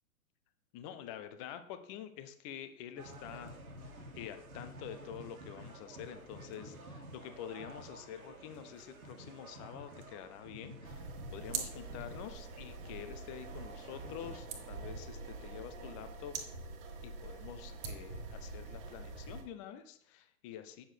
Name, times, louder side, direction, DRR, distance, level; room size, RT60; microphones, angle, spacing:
voice 1, 0.7-3.5 4.1-11.0 11.3-16.4 17.0-20.8, left 10 dB, 25° left, 10 dB, 0.6 m, -47 dB
sound 1, 3.0-14.4, right 1 dB, 75° right, 1.8 m, -51 dB
sound 2, 10.8-19.4, right 4 dB, 40° right, 1.7 m, -44 dB
9.1 x 7.1 x 3.3 m, 0.68 s
figure-of-eight pair, 115°, 43 cm